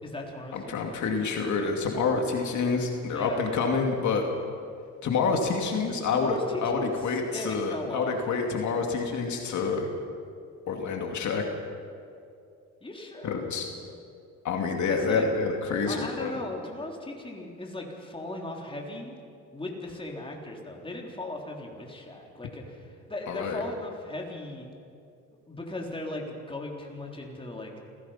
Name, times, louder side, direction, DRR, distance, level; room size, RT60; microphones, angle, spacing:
voice 1, 0.0-0.7 3.1-3.7 6.1-8.4 12.8-13.4 14.9-15.2 15.9-19.2 19.5-24.7 25.5-27.8, left 2 dB, 15° left, 0 dB, 3.6 m, -37 dB
voice 2, 0.5-4.3 5.0-9.9 10.7-11.4 13.2-13.7 14.4-16.4 23.3-23.6, left 4 dB, 70° left, 2 dB, 2.4 m, -28 dB
27.5 x 16.5 x 5.8 m, 2.5 s
cardioid pair, 90°, 30 cm